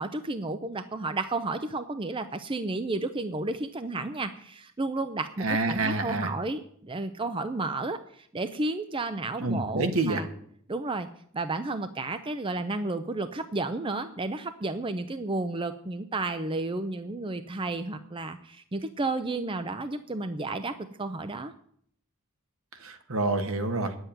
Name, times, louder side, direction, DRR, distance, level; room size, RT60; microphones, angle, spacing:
voice 1, 0.0-10.2 10.7-11.1 11.3-21.5, right 2 dB, 25° right, 10 dB, 0.5 m, -32 dB
voice 2, 5.4-6.3 9.4-10.2 22.7-23.9, right 2 dB, 70° right, 6 dB, 1.6 m, -28 dB
10.0 x 7.9 x 9.0 m, 0.64 s
head